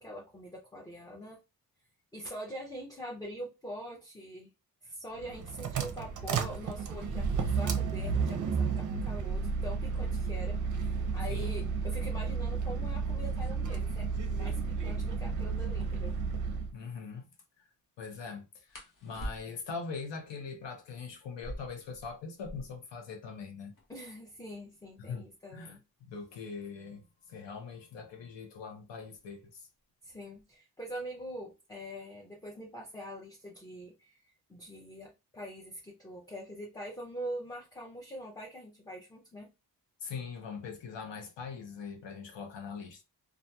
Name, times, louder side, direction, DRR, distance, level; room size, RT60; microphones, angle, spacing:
voice 1, 0.0-1.4 2.1-4.5 4.8-16.2 23.9-25.8 30.0-39.5, equal, 10° left, 0.5 m, -44 dB
sound 1, 5.2-16.7, right 5 dB, 50° right, 0.5 m, -32 dB
sound 2, 16.0-16.2 18.7-19.8 21.3-22.9 23.2-23.3 23.5-24.1 24.7-27.3 28.3-28.6 29.0-29.5 29.8-30.5, equal, 45° left, 0.9 m, -46 dB
voice 2, 16.7-17.3 17.6-17.7 18.0-23.7 25.0-25.2 25.5-29.7 40.0-43.0, left 5 dB, 85° left, 0.8 m, -42 dB
2.7 x 2.4 x 2.2 m
wide cardioid pair, 110°, 42 cm